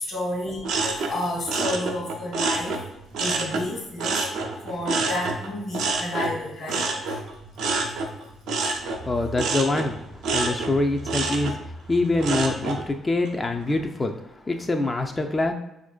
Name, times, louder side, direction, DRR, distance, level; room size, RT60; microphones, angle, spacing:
voice 1, 0.0-2.8 3.2-7.2 7.8-7.9 8.6-8.8, left 1 dB, 65° left, -3 dB, 1.3 m, -31 dB
sound 1, 0.6-3.7 4.0-12.8 13.3-13.7, right 3 dB, 70° right, 0.4 m, -28 dB
voice 2, 9.0-15.5, left 2 dB, 30° left, 4 dB, 0.3 m, -25 dB
4.1 x 2.5 x 2.2 m, 0.87 s
hypercardioid pair, 50°, 0 cm